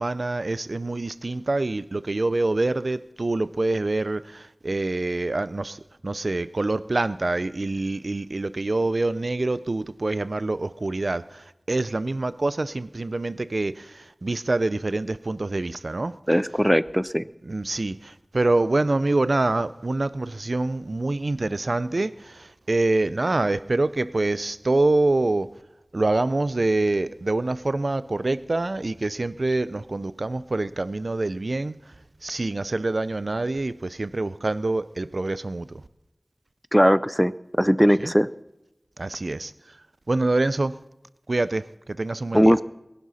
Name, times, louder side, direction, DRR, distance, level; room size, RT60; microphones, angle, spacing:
voice 1, 0.0-16.1 17.4-25.5 25.9-31.8 32.2-35.8 38.0-38.1 39.0-39.5 40.1-40.8 41.3-42.6, right 2 dB, 75° right, 16 dB, 0.4 m, -26 dB
voice 2, 16.3-17.3 36.7-38.3 42.3-42.6, equal, ahead, 17 dB, 0.4 m, -19 dB
22.0 x 11.0 x 4.1 m, 0.93 s
wide cardioid pair, 50°, 0 cm